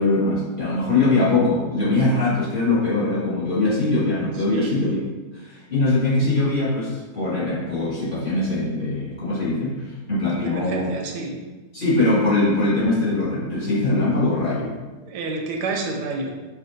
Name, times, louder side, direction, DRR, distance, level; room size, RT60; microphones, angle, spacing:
voice 1, 0.0-5.0 5.3-10.9 11.7-14.7, left 2 dB, 35° left, -10 dB, 1.3 m, -22 dB
voice 2, 10.4-11.4 15.1-16.3, right 3 dB, 85° right, 2 dB, 1.2 m, -29 dB
5.5 x 2.4 x 2.6 m, 1.3 s
omnidirectional pair, 1.7 m